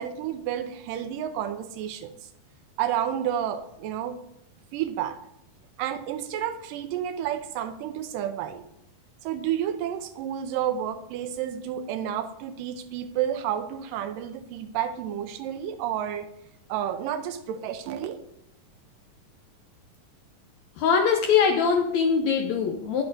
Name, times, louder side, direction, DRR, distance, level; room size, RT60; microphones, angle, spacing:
voice 1, 0.0-2.1 2.8-4.2 4.7-5.2 5.8-8.6 9.2-16.3 16.7-18.2, right 10 dB, 85° right, 9 dB, 2.3 m, -30 dB
voice 2, 20.8-23.0, left 6 dB, 75° left, 4 dB, 1.7 m, -22 dB
10.5 x 8.0 x 2.6 m, 0.82 s
omnidirectional pair, 3.8 m